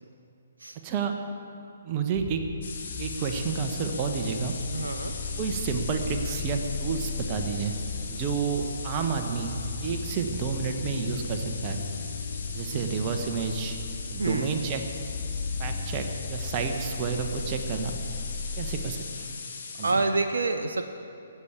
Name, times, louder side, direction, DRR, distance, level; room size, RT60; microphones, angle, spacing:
voice 1, 0.8-1.2 1.8-2.4 3.0-4.6 5.4-7.8 8.1-9.5 9.8-11.8 12.5-13.8 14.1-14.9 15.6-18.0 18.6-19.2 19.8-20.0, right 6 dB, 30° right, 5 dB, 1.3 m, -30 dB
sound 1, 2.1-18.8, left 4 dB, 25° left, 2.5 m, -36 dB
sound 2, 2.6-19.9, left 5 dB, 55° left, 2.2 m, -40 dB
voice 2, 4.7-5.1 12.7-13.2 14.2-14.5 19.8-20.8, right 3 dB, 70° right, 5 dB, 0.7 m, -28 dB
17.0 x 7.3 x 8.2 m, 2.6 s
figure-of-eight pair, 135°, 0 cm